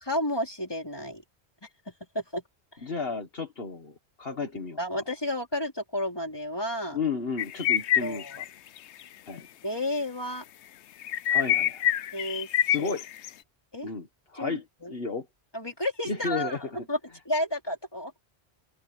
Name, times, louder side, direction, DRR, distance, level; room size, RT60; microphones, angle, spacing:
voice 1, 0.0-1.2 1.9-2.4 4.8-7.0 8.0-8.4 9.6-10.4 12.1-12.5 12.8-12.9 13.7-13.9 14.3-14.9 15.5-17.0 17.2-18.1, left 1 dB, 20° left, 4.5 m, -31 dB
voice 2, 2.8-5.0 6.9-8.4 9.3-9.5 11.2-11.9 12.6-13.1 13.8-15.3 16.1-16.9, left 4 dB, 60° left, 1.9 m, -33 dB
sound 1, 7.4-8.5 8.8-9.0 9.4-9.5 11.0-13.3, left 10 dB, 85° left, 0.9 m, -26 dB
open air
omnidirectional pair, 1.1 m